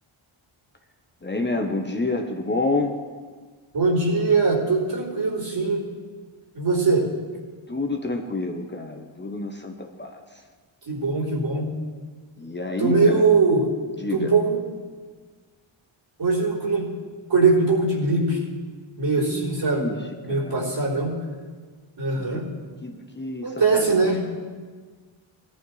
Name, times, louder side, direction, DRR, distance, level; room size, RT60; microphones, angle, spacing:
voice 1, 1.2-2.9 7.7-10.4 12.4-13.2 14.0-14.3 19.2-19.9 20.3-20.8 22.2-22.4 22.8-24.1, left 2 dB, 20° left, 3 dB, 1.0 m, -29 dB
voice 2, 3.7-5.8 6.5-7.1 10.9-11.7 12.8-13.7 14.1-14.6 16.2-16.9 17.3-18.4 19.0-19.8 20.2-21.1 22.0-22.5 23.4-24.2, right 4 dB, 60° right, -6 dB, 3.7 m, -21 dB
17.5 x 11.5 x 3.3 m, 1.5 s
wide cardioid pair, 105°, 50 cm